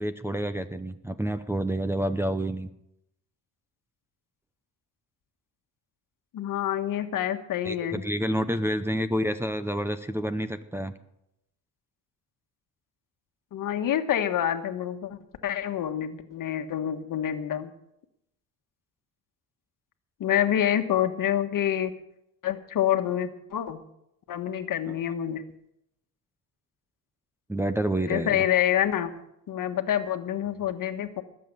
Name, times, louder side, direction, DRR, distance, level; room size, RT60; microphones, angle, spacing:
voice 1, 0.0-2.7 7.6-10.9 24.9-25.0 27.5-28.4, right 1 dB, 5° right, 6 dB, 0.7 m, -29 dB
voice 2, 6.3-8.0 13.5-17.7 20.2-21.9 22.4-23.8 24.3-25.4 28.1-29.1 29.5-31.2, left 10 dB, 60° left, 7 dB, 1.4 m, -27 dB
20.0 x 7.8 x 6.8 m, 0.81 s
cardioid pair, 115°, 37 cm